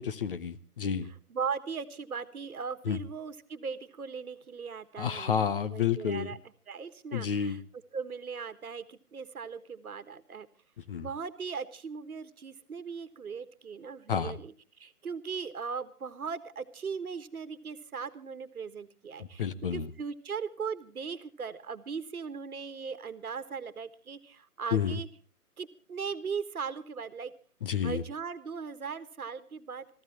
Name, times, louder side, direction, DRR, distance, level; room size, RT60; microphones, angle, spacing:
voice 1, 0.0-1.1 2.9-3.0 5.0-6.3 7.1-7.6 10.9-11.1 14.1-14.4 19.4-19.9 24.7-25.0 27.6-28.0, left 7 dB, 35° left, 12 dB, 0.9 m, -30 dB
voice 2, 1.3-6.4 6.7-7.6 7.9-10.5 11.0-25.1 25.6-27.3 27.8-30.0, right 6 dB, 70° right, 12 dB, 1.5 m, -38 dB
26.0 x 14.5 x 2.9 m, 0.40 s
figure-of-eight pair, 145°, 45 cm